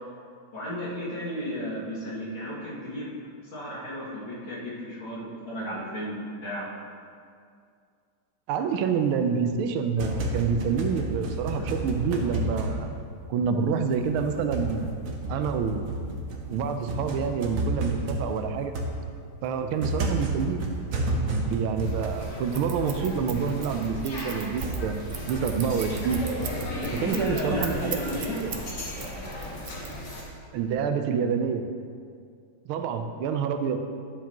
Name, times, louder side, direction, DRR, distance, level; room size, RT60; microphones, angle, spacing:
voice 1, 0.5-3.1 3.5-6.7 11.5-11.9 26.8-28.4, equal, 65° left, -8 dB, 3.0 m, -33 dB
voice 2, 8.5-13.0 13.3-14.9 15.3-15.9 16.5-18.7 19.4-20.7 21.3-25.0 25.3-26.2 27.0-28.0 28.4-28.5 30.5-31.6 32.7-33.8, right 6 dB, 90° right, 7 dB, 1.5 m, -27 dB
sound 1, 9.8-13.6 13.9-27.9, right 1 dB, 55° right, 1.0 m, -32 dB
sound 2, 21.8-30.2, left 1 dB, 40° left, 1.4 m, -37 dB
Scissors, 22.5-28.7 29.0-30.3, right 8 dB, 75° right, 0.7 m, -37 dB
11.0 x 7.2 x 2.9 m, 2.3 s
omnidirectional pair, 2.3 m